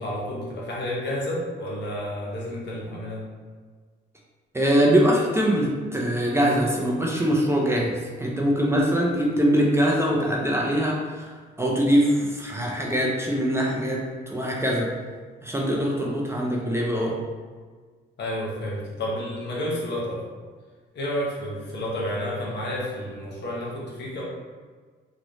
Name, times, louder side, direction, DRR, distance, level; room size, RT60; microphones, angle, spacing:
voice 1, 0.0-3.2 18.2-20.2 20.9-24.3, left 1 dB, 60° left, -4 dB, 1.1 m, -30 dB
voice 2, 4.5-11.3 11.6-14.9 15.4-17.2, equal, 15° right, -3 dB, 0.5 m, -23 dB
3.1 x 3.0 x 2.6 m, 1.5 s
cardioid pair, 90°, 20 cm